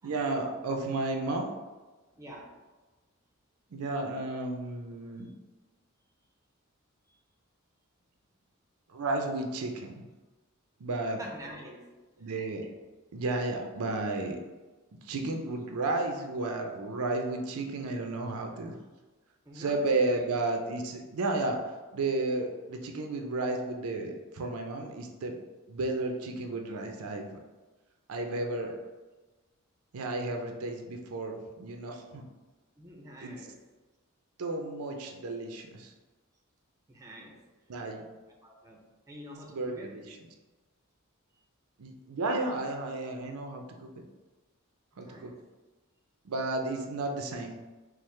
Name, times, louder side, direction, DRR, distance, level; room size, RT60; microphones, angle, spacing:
voice 1, 0.0-1.5 3.7-5.3 8.9-10.0 10.8-11.2 12.2-12.7 13.1-14.4 15.0-18.7 19.6-21.6 21.9-25.4 25.7-27.4 28.1-28.7 29.9-32.2 33.2-33.3 34.4-35.9 37.7-38.0 39.5-40.0 41.8-43.9 45.0-45.3 46.2-47.6, right 2 dB, 85° right, 3 dB, 0.5 m, -32 dB
voice 2, 2.1-2.6 7.1-7.2 11.2-11.9 12.2-12.3 19.4-20.2 28.2-28.8 32.8-33.6 36.9-37.4 38.3-40.0 44.9-45.4, equal, 15° right, -1 dB, 0.5 m, -48 dB
4.5 x 2.0 x 3.2 m, 1.2 s
head